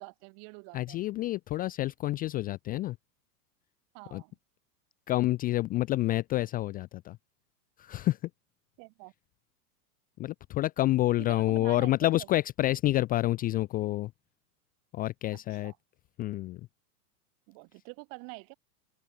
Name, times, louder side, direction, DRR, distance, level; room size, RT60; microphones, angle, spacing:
voice 1, 0.0-1.0 3.9-4.4 8.8-9.1 11.2-12.3 15.3-15.8 17.5-18.5, right 36 dB, 45° right, 3.5 m, -46 dB
voice 2, 0.7-3.0 4.1-4.2 5.1-7.2 7.8-8.3 10.2-14.1 14.9-15.7 16.2-16.6, left 16 dB, 20° left, 0.4 m, -28 dB
hypercardioid pair, 125°, 46 cm